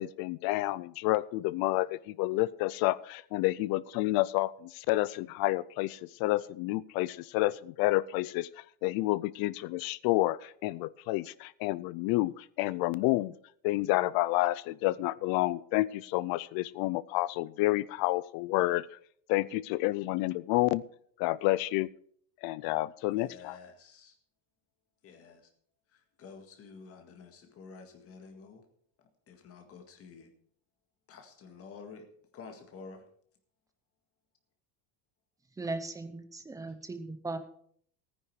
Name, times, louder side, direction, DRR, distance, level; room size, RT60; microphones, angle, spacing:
voice 1, 0.0-13.3 13.6-19.0 19.3-20.8 21.2-21.9 22.4-23.6, left 18 dB, 55° left, 20 dB, 0.5 m, -29 dB
voice 2, 23.1-24.2 25.0-25.5 25.9-28.7 29.0-30.3 31.1-32.1 32.3-33.0, left 5 dB, 30° left, 5 dB, 1.8 m, -50 dB
voice 3, 35.6-37.4, right 3 dB, 10° right, 9 dB, 0.7 m, -38 dB
14.5 x 9.8 x 4.7 m, 0.62 s
cardioid pair, 175°, 45 cm